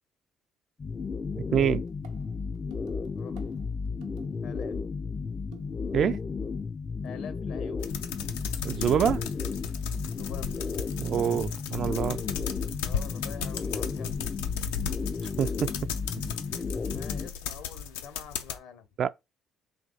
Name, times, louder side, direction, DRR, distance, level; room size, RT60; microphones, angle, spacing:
sound 1, 0.8-17.3, left 5 dB, 35° left, 0.4 m, -33 dB
voice 1, 1.5-1.8 5.9-6.2 8.6-9.2 11.0-12.2 15.4-15.7 19.0-19.1, right 8 dB, 55° right, 0.3 m, -25 dB
sound 2, 1.8-4.5 5.5-6.0, right 10 dB, 85° right, 0.7 m, -54 dB
voice 2, 3.2-3.5 4.4-4.8 7.0-7.9 10.0-10.6 12.8-14.1 16.9-18.9, left 7 dB, 75° left, 1.0 m, -46 dB
sound 3, 7.8-18.6, left 8 dB, 90° left, 0.5 m, -36 dB
3.4 x 2.9 x 4.0 m
hypercardioid pair, 60°, 0 cm